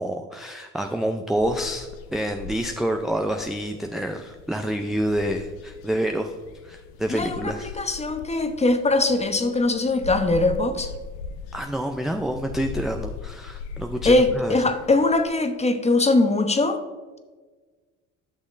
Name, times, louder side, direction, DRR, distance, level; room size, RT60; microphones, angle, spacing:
voice 1, 0.0-6.3 6.6-7.8 11.5-14.6, right 1 dB, ahead, 4 dB, 0.5 m, -28 dB
sound 1, 1.3-15.3, left 5 dB, 75° left, 0.7 m, -39 dB
voice 2, 7.1-10.9 14.0-16.8, left 2 dB, 15° left, 8 dB, 0.8 m, -21 dB
11.5 x 6.3 x 2.6 m, 1.4 s
hypercardioid pair, 60°, 38 cm